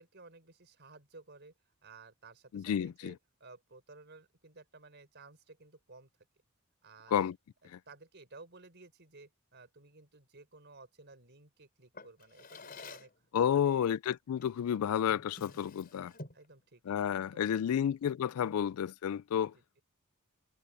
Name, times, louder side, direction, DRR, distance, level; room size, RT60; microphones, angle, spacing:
voice 1, 0.0-1.5 1.8-6.1 6.8-7.2 7.6-13.1 13.4-13.9 16.3-17.8 18.3-18.6 19.5-19.8, right 3 dB, 50° right, 4.8 m, -56 dB
voice 2, 2.5-3.1 7.1-7.4 7.6-7.8 13.3-16.1 16.9-19.5, left 9 dB, 85° left, 0.3 m, -31 dB
Drawer open or close, 11.9-13.2 14.4-14.6 15.0-16.5, left 3 dB, 45° left, 4.5 m, -50 dB
head